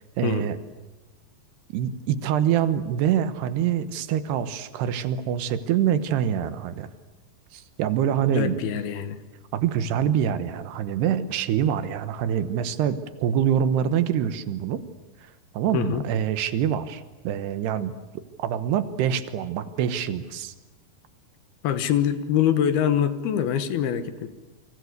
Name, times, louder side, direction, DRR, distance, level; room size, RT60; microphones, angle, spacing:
voice 1, 0.2-0.6 1.7-6.9 7.5-8.6 9.5-14.8 15.5-17.9 18.4-20.5, right 9 dB, 75° right, 12 dB, 3.1 m, -25 dB
voice 2, 8.3-9.2 15.7-16.0 21.6-24.3, left 9 dB, 70° left, 11 dB, 3.0 m, -24 dB
29.0 x 24.5 x 8.1 m, 1.1 s
omnidirectional pair, 4.9 m